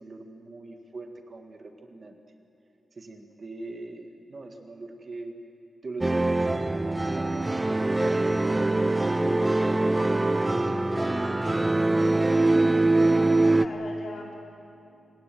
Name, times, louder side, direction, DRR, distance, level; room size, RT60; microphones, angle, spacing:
voice 1, 0.0-2.2 2.9-5.4 5.8-7.4 8.0-11.9, right 3 dB, 35° right, 5 dB, 1.8 m, -43 dB
sound 1, 6.0-13.7, right 2 dB, 15° right, 0.5 m, -23 dB
voice 2, 12.6-14.4, left 3 dB, 55° left, 0 dB, 4.5 m, -41 dB
28.0 x 17.5 x 9.2 m, 2.7 s
wide cardioid pair, 175°, 0 cm